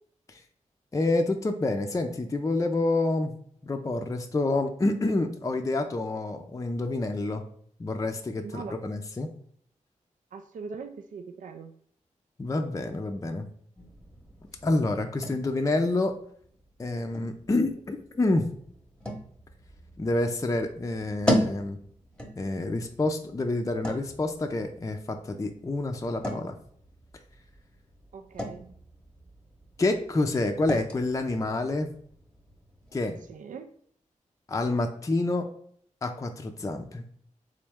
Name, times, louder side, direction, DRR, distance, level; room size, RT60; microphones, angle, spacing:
voice 1, 0.9-3.3 3.6-7.4 7.8-9.3 12.4-13.5 14.6-16.2 16.8-18.5 20.0-21.8 22.3-26.6 29.8-31.9 32.9-33.2 34.5-35.5 36.0-37.0, left 2 dB, 25° left, 5 dB, 0.4 m, -28 dB
voice 2, 8.4-8.9 10.3-11.7 17.5-17.7 28.1-28.8 33.3-33.7, right 5 dB, 75° right, 7 dB, 0.4 m, -41 dB
sound 1, 13.7-33.3, equal, 5° left, 0.9 m, -37 dB
3.7 x 3.1 x 3.4 m, 0.63 s
cardioid pair, 70°, 13 cm